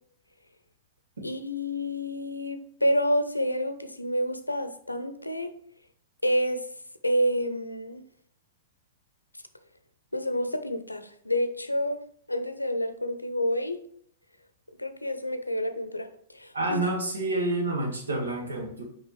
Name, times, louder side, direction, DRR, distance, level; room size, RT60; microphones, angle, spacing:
voice 1, 1.2-5.5 6.2-6.6 7.0-8.0 10.1-12.0 12.3-13.8 14.8-16.1 16.3-16.8, equal, 85° left, 9 dB, 0.6 m, -28 dB
voice 2, 16.5-18.8, right 2 dB, 70° right, 1 dB, 1.7 m, -28 dB
6.5 x 4.9 x 3.2 m, 0.65 s
figure-of-eight pair, 105°, 0 cm